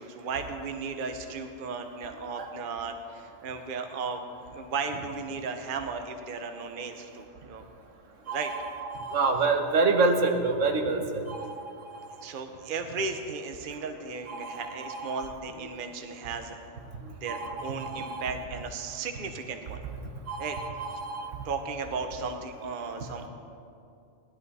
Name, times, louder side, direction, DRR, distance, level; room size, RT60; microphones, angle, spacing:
voice 1, 0.0-4.2 4.5-7.7 8.2-8.5 8.9-9.0 12.2-16.6 17.2-19.8 20.4-20.6 21.4-23.3, right 4 dB, 45° right, 6 dB, 0.9 m, -35 dB
voice 2, 8.3-11.5 14.3-15.3 17.3-18.3 20.3-21.3 23.0-23.3, right 3 dB, 75° right, 4 dB, 1.3 m, -28 dB
17.0 x 11.5 x 4.1 m, 2.6 s
omnidirectional pair, 1.3 m